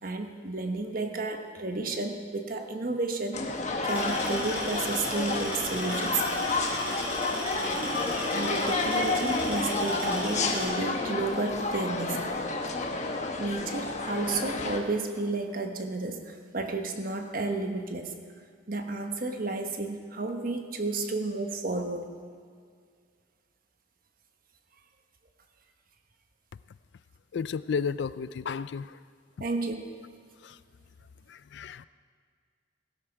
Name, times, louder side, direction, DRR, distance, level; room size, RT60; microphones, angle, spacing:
voice 1, 0.0-6.3 8.3-12.2 13.4-18.1 18.7-22.1 29.4-30.1, right 3 dB, 50° right, 5 dB, 1.1 m, -32 dB
sound 1, 3.3-14.8, left 3 dB, 40° left, 1.1 m, -30 dB
sound 2, 3.9-10.6, equal, 5° right, 4.8 m, -37 dB
voice 2, 27.3-29.0 30.4-30.6 31.3-31.9, left 6 dB, 65° left, 16 dB, 0.4 m, -33 dB
16.5 x 12.5 x 4.6 m, 2.1 s
head